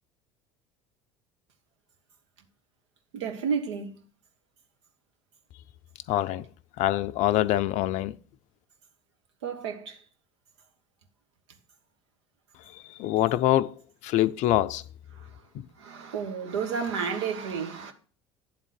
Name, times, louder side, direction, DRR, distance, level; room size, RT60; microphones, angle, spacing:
voice 1, 3.1-4.0 9.4-10.0 15.1-15.4 15.8-17.9, right 6 dB, 75° right, 1.3 m, -32 dB
voice 2, 6.1-6.4 6.8-8.1 13.0-13.7 14.0-14.8, left 14 dB, 55° left, 0.5 m, -24 dB
9.9 x 3.7 x 6.5 m
hypercardioid pair, 65°, 15 cm